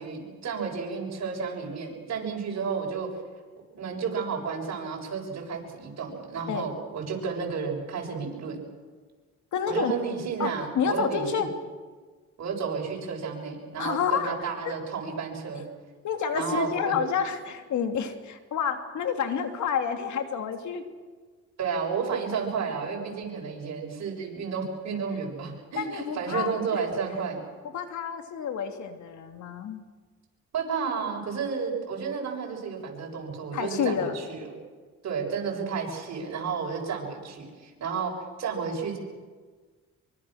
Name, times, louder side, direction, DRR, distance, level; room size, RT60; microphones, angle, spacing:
voice 1, 0.0-3.1 3.7-8.6 9.7-11.5 12.4-15.7 16.3-16.9 21.6-27.4 30.5-34.5 35.0-39.0, right 5 dB, 60° right, 0 dB, 6.9 m, -32 dB
voice 2, 9.5-9.9 10.4-10.5 10.7-11.5 13.8-14.3 14.6-14.7 16.0-20.8 25.7-26.8 27.7-29.8 33.5-34.1, left 7 dB, 70° left, 6 dB, 2.8 m, -29 dB
24.5 x 24.0 x 6.5 m, 1.4 s
cardioid pair, 90°, 30 cm